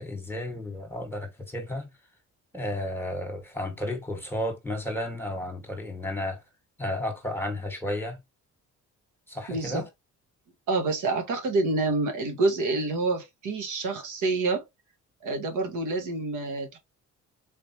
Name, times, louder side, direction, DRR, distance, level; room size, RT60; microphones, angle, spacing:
voice 1, 0.0-1.9 2.5-6.4 6.8-8.2 9.3-9.9, left 1 dB, 5° left, 1.8 m, -33 dB
voice 2, 9.5-9.8 10.7-14.6 15.2-16.8, right 3 dB, 85° right, 1.7 m, -27 dB
4.1 x 3.4 x 2.9 m
cardioid pair, 90°, 30 cm